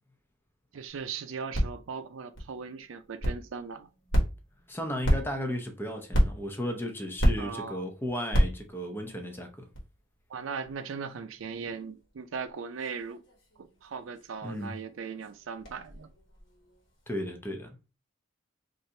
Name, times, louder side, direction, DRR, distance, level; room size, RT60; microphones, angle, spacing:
voice 1, 0.7-3.9 7.4-7.8 10.3-13.2 13.6-16.1, right 5 dB, 90° right, 0.4 m, -38 dB
sound 1, 0.9-17.3, equal, 65° left, 1.2 m, -33 dB
voice 2, 4.7-9.7 14.4-14.8 17.1-17.8, equal, 10° left, 0.6 m, -35 dB
3.2 x 2.5 x 2.7 m
head